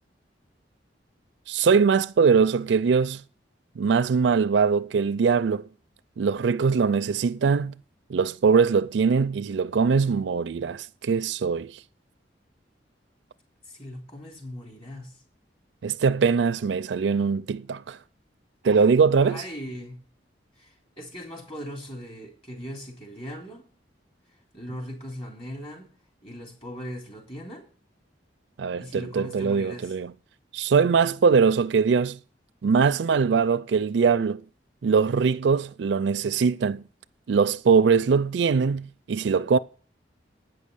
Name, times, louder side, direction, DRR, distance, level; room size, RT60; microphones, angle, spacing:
voice 1, 1.5-3.2 3.8-5.7 6.2-7.7 8.1-11.7 15.8-18.0 18.6-19.4 28.6-30.1 30.5-32.2 32.6-34.4 34.8-36.8 37.3-39.6, right 5 dB, 70° right, 0.4 m, -22 dB
voice 2, 13.7-15.2 19.2-20.0 20.6-23.7 24.5-25.9 26.2-27.6 28.8-29.9, equal, 30° left, 3.6 m, -39 dB
9.1 x 6.3 x 8.2 m
head